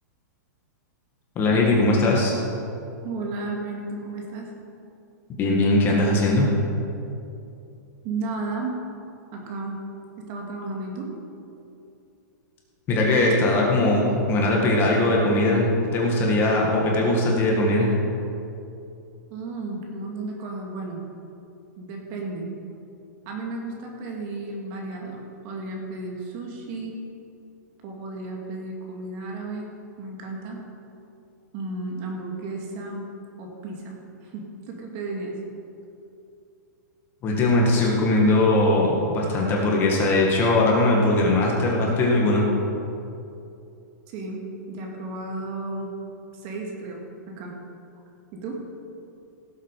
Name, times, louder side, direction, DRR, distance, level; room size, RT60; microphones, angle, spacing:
voice 1, 1.4-2.3 5.4-6.5 12.9-17.9 37.2-42.4, left 2 dB, 20° left, -2 dB, 2.0 m, -20 dB
voice 2, 3.0-4.5 8.0-8.8 9.3-9.8 10.3-11.1 19.3-21.0 21.8-22.5 23.3-26.9 27.8-29.7 30.0-30.6 31.5-33.0 33.4-34.0 34.2-35.3 44.1-44.4 44.7-45.9 46.3-47.5 48.3-48.6, right 3 dB, 35° right, 0 dB, 2.3 m, -33 dB
17.0 x 8.1 x 5.0 m, 2.7 s
hypercardioid pair, 155°, 10 cm